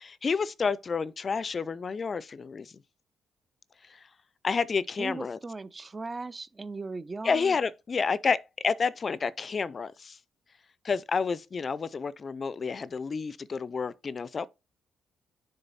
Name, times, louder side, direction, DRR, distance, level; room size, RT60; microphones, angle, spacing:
voice 1, 0.0-2.7 3.9-4.0 4.4-5.4 7.2-10.2 10.8-14.5, left 5 dB, 40° left, 0.4 m, -30 dB
voice 2, 5.0-7.6, right 3 dB, 25° right, 0.4 m, -38 dB
6.9 x 3.7 x 4.1 m
cardioid pair, 90°, 0 cm